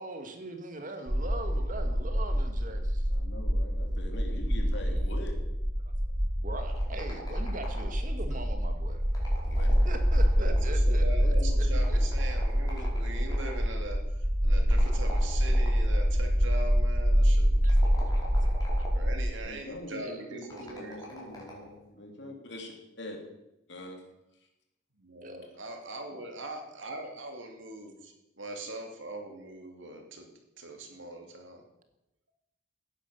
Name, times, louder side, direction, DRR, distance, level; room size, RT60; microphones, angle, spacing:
voice 1, 0.0-3.1 6.0-6.1 6.4-9.0 9.8-11.3 11.9-12.0 17.6-17.8 18.8-18.9 20.0-20.3 25.2-25.5, right 2 dB, 40° right, 6 dB, 2.0 m, -41 dB
sound 1, 1.1-19.3, equal, 20° right, 1.4 m, -26 dB
voice 2, 3.1-5.3 8.3-8.4 9.4-9.9 11.2-12.1 19.4-23.2 23.7-24.0, left 1 dB, 60° left, 2 dB, 3.5 m, -43 dB
sound 2, 6.6-8.2 9.0-10.9 11.8-13.7 14.7-16.0 17.6-19.2 20.4-21.8, equal, 20° left, 5.2 m, -45 dB
voice 3, 10.4-18.2 18.9-21.0 25.0-30.3 30.6-31.6, right 1 dB, 65° right, 3 dB, 2.8 m, -41 dB
17.0 x 10.0 x 7.0 m, 0.89 s
head